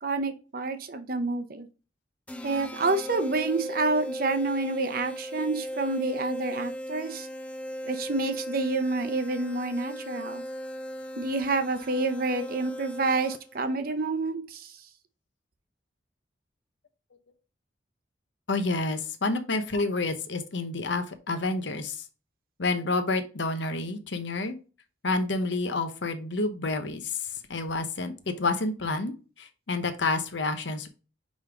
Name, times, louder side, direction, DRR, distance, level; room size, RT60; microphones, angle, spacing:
voice 1, 0.0-1.7 2.4-7.3 7.8-10.4 11.2-14.7, right 3 dB, 50° right, 9 dB, 0.8 m, -28 dB
sound 1, 2.3-13.7, equal, 5° left, 0.5 m, -37 dB
voice 2, 18.5-22.0 22.6-24.6 25.0-30.9, left 3 dB, 70° left, 9 dB, 0.9 m, -29 dB
5.2 x 5.2 x 3.6 m, 0.34 s
head